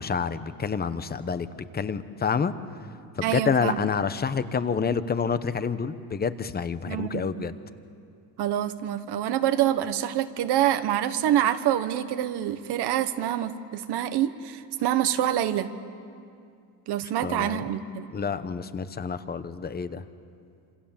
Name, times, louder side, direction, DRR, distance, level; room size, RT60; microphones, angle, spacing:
voice 1, 0.0-1.5 1.7-2.5 3.2-7.6 17.2-17.6 18.1-20.0, left 6 dB, 20° left, 12 dB, 0.9 m, -28 dB
voice 2, 3.2-3.9 6.9-7.5 8.4-15.7 16.9-18.1, right 11 dB, 65° right, 10 dB, 1.3 m, -26 dB
27.5 x 27.0 x 7.3 m, 2.4 s
cardioid pair, 140°, 43 cm